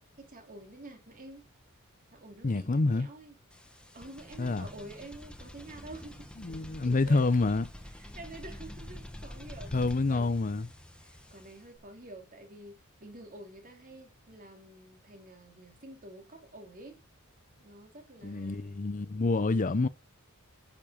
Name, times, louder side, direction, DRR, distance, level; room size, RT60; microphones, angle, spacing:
voice 1, 0.2-1.5 2.1-3.4 3.9-6.3 6.8-7.3 7.8-9.7 10.1-10.7 11.0-17.0 17.6-18.8, right 2 dB, 40° right, 2.7 m, -48 dB
voice 2, 2.4-3.1 4.4-4.7 6.4-7.6 9.7-10.7 18.2-19.9, left 3 dB, 35° left, 0.6 m, -27 dB
sound 1, 3.5-11.8, left 1 dB, 5° left, 1.1 m, -47 dB
9.6 x 7.5 x 7.3 m
head